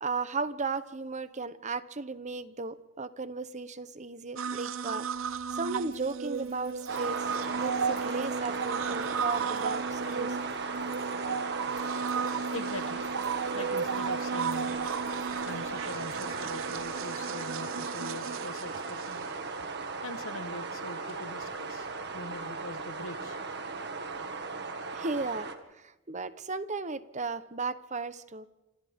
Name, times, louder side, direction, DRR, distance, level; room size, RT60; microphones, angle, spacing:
voice 1, 0.0-5.1 5.5-7.3 7.5-10.5 24.9-25.5 25.8-28.5, right 4 dB, 35° right, 13 dB, 0.9 m, -35 dB
sound 1, 4.4-19.6 21.1-21.2, right 6 dB, 70° right, 0.6 m, -35 dB
sound 2, 5.0-17.1, right 3 dB, 15° right, 6.0 m, -61 dB
sound 3, 6.9-25.6, right 4 dB, 55° right, 1.9 m, -36 dB
voice 2, 12.5-13.1 13.5-14.7 15.4-19.3 20.0-21.9 22.1-23.4, left 2 dB, 70° left, 12 dB, 1.2 m, -42 dB
27.0 x 27.0 x 3.6 m, 0.97 s
head